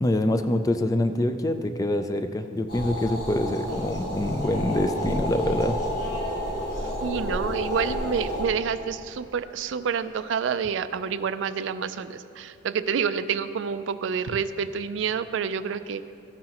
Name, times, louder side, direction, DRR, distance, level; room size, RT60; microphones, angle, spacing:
voice 1, 0.0-5.8, left 1 dB, 20° left, 8 dB, 0.3 m, -25 dB
sound 1, 2.7-8.5, equal, 60° left, 2.2 m, -30 dB
voice 2, 6.8-16.0, right 6 dB, 75° right, 13 dB, 0.4 m, -28 dB
14.5 x 9.4 x 2.9 m, 2.6 s
head